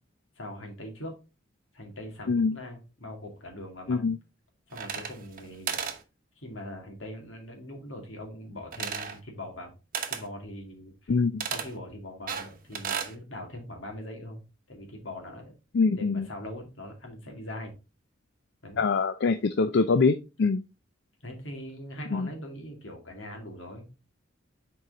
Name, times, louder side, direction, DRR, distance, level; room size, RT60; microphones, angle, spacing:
voice 1, 0.4-1.2 1.7-4.1 4.7-6.0 6.4-9.7 10.0-11.1 11.4-14.4 14.7-15.5 15.9-17.7 18.6-18.8 21.2-23.9, left 1 dB, 75° left, 2.4 m, -41 dB
sound 1, 4.7-5.4 5.7-6.0 8.7-9.2 9.9-10.3 11.4-11.7 12.3-13.1, right 7 dB, 45° right, 1.0 m, -33 dB
voice 2, 11.1-11.5 15.7-16.3 18.8-20.6 22.1-22.3, left 4 dB, 60° left, 0.4 m, -24 dB
6.7 x 4.6 x 3.7 m
head